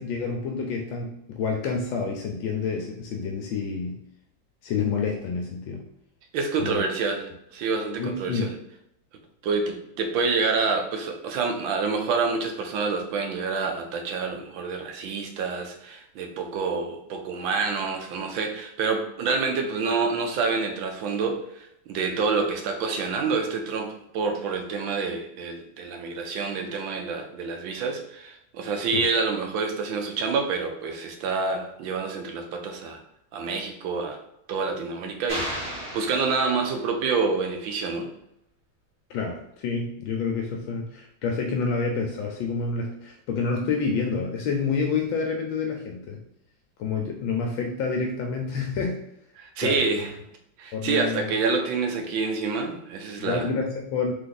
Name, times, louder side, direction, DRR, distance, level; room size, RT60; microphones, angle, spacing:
voice 1, 0.0-4.0 4.6-5.8 6.6-6.8 8.0-8.5 28.9-29.0 39.1-46.2 46.8-49.0 49.6-50.1 50.7-51.3 53.2-54.1, left 5 dB, 80° left, 2 dB, 1.4 m, -28 dB
voice 2, 6.3-8.5 9.4-33.0 33.3-34.2 34.5-38.1 49.4-50.1 50.6-53.5, right 4 dB, 75° right, 3 dB, 1.5 m, -27 dB
sound 1, 35.3-37.0, equal, 35° right, 2.1 m, -34 dB
3.8 x 3.4 x 4.0 m, 0.78 s
omnidirectional pair, 2.2 m